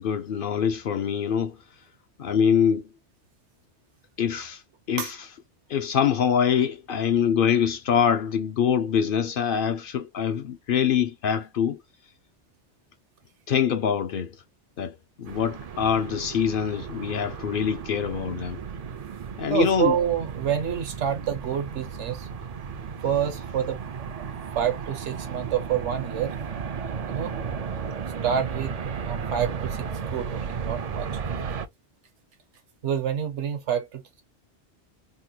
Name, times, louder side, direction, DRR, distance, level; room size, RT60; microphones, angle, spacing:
voice 1, 0.0-1.5 2.2-2.8 4.2-4.6 4.9-5.1 5.7-11.8 13.5-14.3 14.8-14.9 15.2-18.6 19.4-19.9, left 8 dB, 60° left, 0.6 m, -24 dB
sound 1, 15.3-31.7, right 6 dB, 55° right, 0.4 m, -34 dB
voice 2, 19.5-22.3 23.0-24.1 24.5-26.3 27.0-27.4 28.2-31.1 32.8-34.2, right 9 dB, 85° right, 1.2 m, -28 dB
3.7 x 2.2 x 2.8 m
omnidirectional pair, 1.2 m